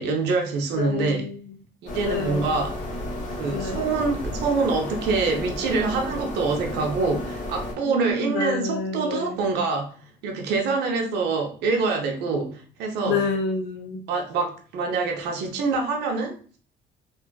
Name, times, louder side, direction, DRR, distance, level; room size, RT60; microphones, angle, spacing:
voice 1, 0.0-1.2 1.8-2.8 3.3-10.0 10.2-13.2 14.1-16.6, right 4 dB, 80° right, 0.7 m, -25 dB
voice 2, 0.7-1.6 2.0-2.5 3.5-3.9 7.8-9.4 13.0-14.0, left 4 dB, 75° left, 0.7 m, -28 dB
sound 1, 1.9-7.7, left 1 dB, 50° left, 1.1 m, -32 dB
2.6 x 2.4 x 2.2 m
cardioid pair, 110°, 17 cm